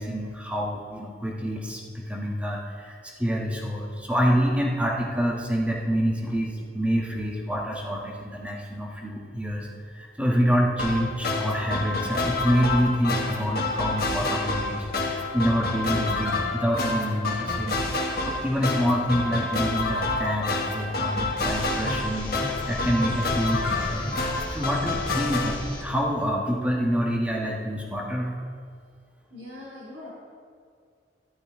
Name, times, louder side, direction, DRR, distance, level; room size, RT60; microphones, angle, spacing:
voice 1, 0.0-9.7 9.9-17.8 18.2-22.3 22.7-24.2 24.5-28.3, equal, 10° right, -2 dB, 1.5 m, -27 dB
sound 1, 10.8-25.5, left 2 dB, 60° left, 1.3 m, -28 dB
sound 2, 21.4-25.8, left 1 dB, 30° left, 2.6 m, -35 dB
voice 2, 29.3-30.1, left 2 dB, 75° right, -6 dB, 2.8 m, -42 dB
13.0 x 11.0 x 3.7 m, 2.1 s
head